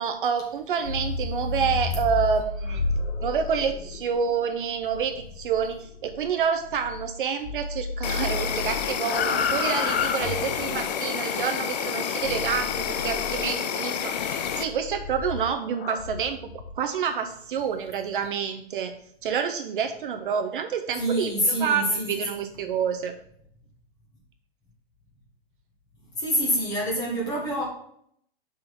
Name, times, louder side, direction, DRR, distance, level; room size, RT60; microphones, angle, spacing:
voice 1, 0.0-2.8 3.2-16.4 16.8-18.9 19.2-23.1, right 7 dB, 55° right, 7 dB, 0.7 m, -28 dB
sound 1, 0.7-7.2 7.4-10.8 12.2-13.5 14.2-16.8, left 4 dB, 80° left, 0.8 m, -32 dB
Insect, 8.0-14.6, left 8 dB, 45° left, 0.5 m, -29 dB
voice 2, 21.0-22.4 26.2-27.6, equal, 10° left, -3 dB, 1.4 m, -26 dB
5.9 x 3.9 x 5.2 m, 0.67 s
hypercardioid pair, 155°, 31 cm